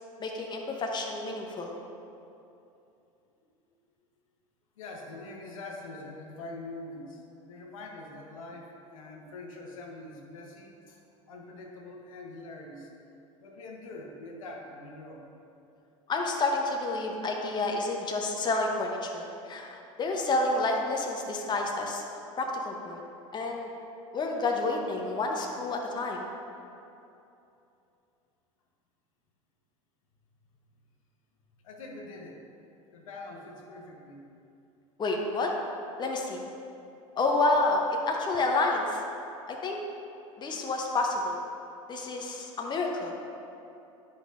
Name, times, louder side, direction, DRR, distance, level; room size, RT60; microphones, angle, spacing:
voice 1, 0.2-1.7 16.1-22.0 22.4-23.0 23.3-23.7 24.1-26.3 35.0-35.5 36.0-36.4 37.2-39.0 39.5-39.8 40.4-41.4 41.9-43.1, left 2 dB, 25° left, 1 dB, 0.8 m, -29 dB
voice 2, 4.8-12.9 13.4-15.2 31.6-32.4 32.9-34.3, left 2 dB, 75° left, 0 dB, 1.0 m, -44 dB
9.9 x 5.3 x 2.6 m, 2.8 s
hypercardioid pair, 80°, 17 cm